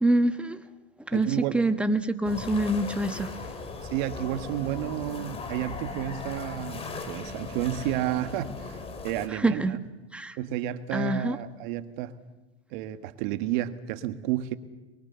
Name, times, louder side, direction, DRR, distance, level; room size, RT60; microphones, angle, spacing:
voice 1, 0.0-0.6 1.0-3.3 9.3-9.8 10.1-10.4 10.9-11.4, right 1 dB, 5° right, 1.2 m, -26 dB
voice 2, 1.1-1.6 3.9-8.8 9.0-9.8 10.4-12.1 12.7-14.5, right 12 dB, 45° right, 1.7 m, -31 dB
sound 1, 2.2-9.3, left 3 dB, 20° left, 2.9 m, -38 dB
23.5 x 23.0 x 7.0 m
hypercardioid pair, 135°, 32 cm